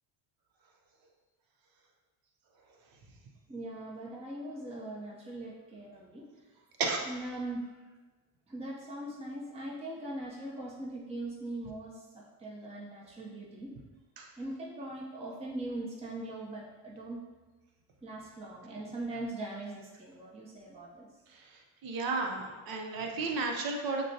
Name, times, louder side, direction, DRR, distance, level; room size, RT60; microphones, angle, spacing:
voice 1, 3.5-6.5 7.0-7.7 8.5-13.7 14.4-17.2 18.0-21.1, right 1 dB, 15° right, -4 dB, 0.7 m, -41 dB
voice 2, 21.3-24.0, right 3 dB, 50° right, 2 dB, 0.8 m, -33 dB
6.1 x 2.3 x 2.8 m, 1.2 s
supercardioid pair, 85°, 45 cm